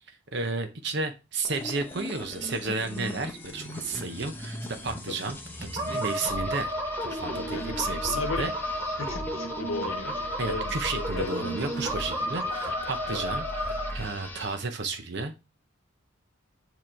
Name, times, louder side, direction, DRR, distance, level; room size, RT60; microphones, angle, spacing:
voice 1, 0.3-6.7 7.0-8.5 10.4-15.4, right 3 dB, 55° right, 0.8 m, -32 dB
sound 1, 1.4-14.7, left 1 dB, 10° left, 0.7 m, -40 dB
sound 2, 5.8-13.9, equal, 20° right, 2.1 m, -32 dB
voice 2, 8.0-8.5 9.0-11.6 12.2-12.3 12.7-12.8 13.1-13.2, left 3 dB, 85° left, 0.9 m, -36 dB
7.3 x 3.1 x 4.3 m
head